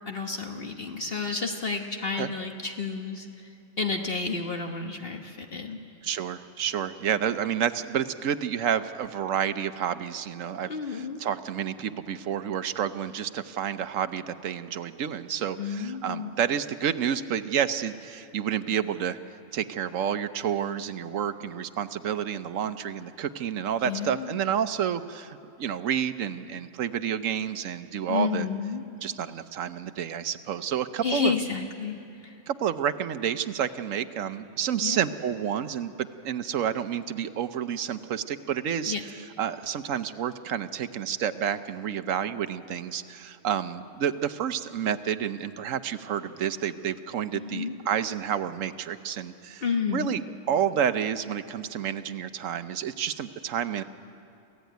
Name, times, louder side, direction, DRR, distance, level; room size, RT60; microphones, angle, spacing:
voice 1, 0.1-3.5 3.8-5.8 10.7-11.2 15.6-16.3 23.8-24.4 28.1-28.8 31.0-32.4 34.8-35.0 38.9-39.0 47.3-47.8 49.6-50.1, left 5 dB, 50° left, 3 dB, 1.4 m, -31 dB
voice 2, 6.0-19.2 19.5-28.5 29.0-31.3 32.5-38.9 39.4-49.6 49.9-50.2 50.5-53.8, right 9 dB, 80° right, 11 dB, 1.2 m, -29 dB
27.5 x 15.5 x 9.3 m, 2.7 s
omnidirectional pair, 1.3 m